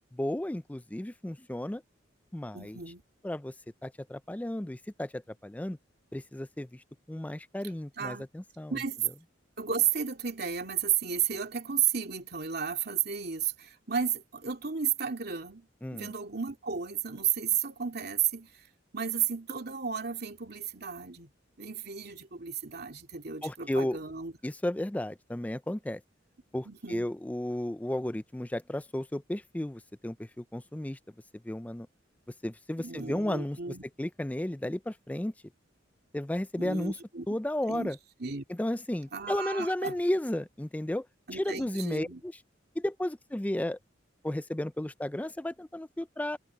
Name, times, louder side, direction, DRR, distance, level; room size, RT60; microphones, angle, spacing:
voice 1, 0.1-1.8 2.3-2.8 3.2-3.5 3.8-5.8 6.1-8.8 15.8-16.1 23.4-24.0 24.4-26.0 26.5-31.0 31.4-31.9 32.4-33.6 34.0-35.3 36.1-37.0 37.3-38.0 38.5-41.1 41.3-42.4 42.8-43.8 44.2-46.4, left 1 dB, 10° left, 0.4 m, -33 dB
voice 2, 2.5-3.0 8.0-8.2 8.7-9.0 9.6-15.7 15.9-18.7 18.9-21.3 21.6-24.3 26.6-27.1 32.8-33.8 36.6-37.3 37.7-37.9 38.2-38.4 39.1-40.0 41.3-42.2, right 8 dB, 55° right, 2.8 m, -33 dB
head